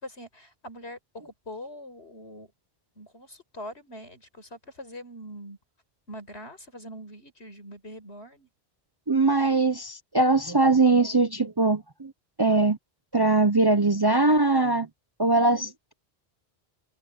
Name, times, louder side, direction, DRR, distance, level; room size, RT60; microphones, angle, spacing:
voice 1, 0.0-1.0 1.2-2.5 3.0-5.6 6.1-8.5, equal, 80° left, 5.4 m, -43 dB
voice 2, 9.1-12.1 12.4-12.8 13.1-14.9 15.2-15.9, right 3 dB, 25° right, 0.6 m, -21 dB
open air
omnidirectional pair, 1.1 m